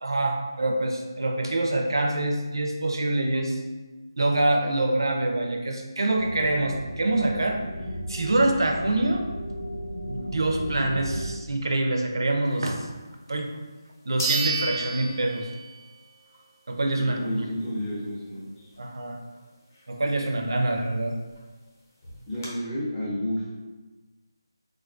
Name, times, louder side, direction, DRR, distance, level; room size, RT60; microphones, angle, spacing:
voice 1, 0.0-3.6 4.2-7.6 8.1-9.2 10.1-12.9 13.3-13.5 14.1-15.5 16.7-17.4 18.8-19.2 19.9-21.2, right 2 dB, 65° right, 3 dB, 0.5 m, -25 dB
sound 1, 6.2-11.3, equal, 70° left, 0.7 m, -34 dB
sound 2, 13.4-13.5 14.2-16.0 16.3-16.4 21.1-21.2 21.4-21.5 22.0-22.5, right 3 dB, 35° left, 0.7 m, -30 dB
voice 2, 17.0-18.7 22.3-23.4, equal, ahead, -13 dB, 0.5 m, -31 dB
3.4 x 2.2 x 2.4 m, 1.2 s
figure-of-eight pair, 170°, 2 cm